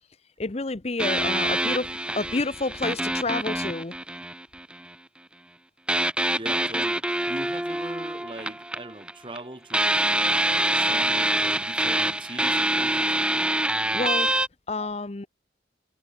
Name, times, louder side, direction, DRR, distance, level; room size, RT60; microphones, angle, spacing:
voice 1, 0.4-3.9 13.9-14.3 14.7-15.3, left 3 dB, 35° left, 0.7 m, -29 dB
sound 1, 1.0-4.9 5.9-9.4 9.7-14.5, right 1 dB, 5° right, 0.9 m, -25 dB
voice 2, 6.3-10.2 10.6-13.2 14.8-14.9, right 1 dB, 25° right, 2.0 m, -40 dB
head